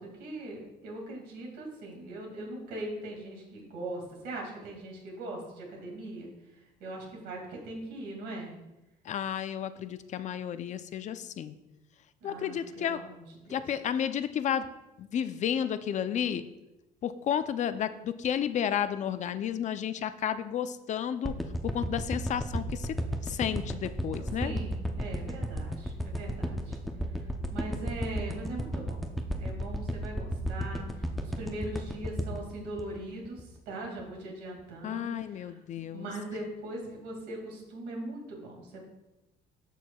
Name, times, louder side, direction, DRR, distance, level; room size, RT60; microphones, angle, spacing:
voice 1, 0.0-6.3 6.8-8.6 12.2-13.1 13.5-13.6 24.4-26.8 27.5-29.0 29.4-35.2 35.9-38.8, right 1 dB, 85° right, 0 dB, 2.2 m, -40 dB
voice 2, 9.0-11.5 12.2-13.0 13.5-14.7 15.0-16.5 17.0-21.4 21.6-23.0 23.2-24.6 34.8-36.1, left 9 dB, 45° left, 12 dB, 0.4 m, -32 dB
sound 1, 21.2-33.6 34.0-34.1, equal, ahead, 0.6 m, -33 dB
13.5 x 4.5 x 2.3 m, 0.97 s
cardioid pair, 110°, 17 cm